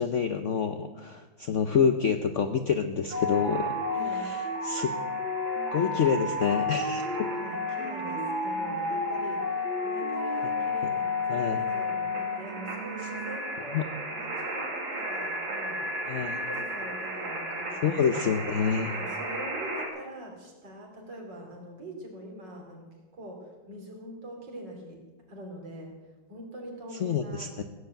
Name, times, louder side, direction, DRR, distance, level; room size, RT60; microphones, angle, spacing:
voice 1, 0.0-3.7 4.2-4.4 4.6-4.9 5.7-7.3 11.3-11.6 13.7-13.8 16.1-16.3 17.8-18.9 27.0-27.6, left 7 dB, 60° left, 7 dB, 0.8 m, -27 dB
sound 1, 3.1-19.9, left 2 dB, 85° right, 3.5 m, -32 dB
voice 2, 3.9-4.3 7.3-18.3 18.8-25.0 25.3-27.5, equal, 65° right, 0 dB, 4.0 m, -44 dB
16.0 x 8.2 x 9.0 m, 1.2 s
omnidirectional pair, 2.1 m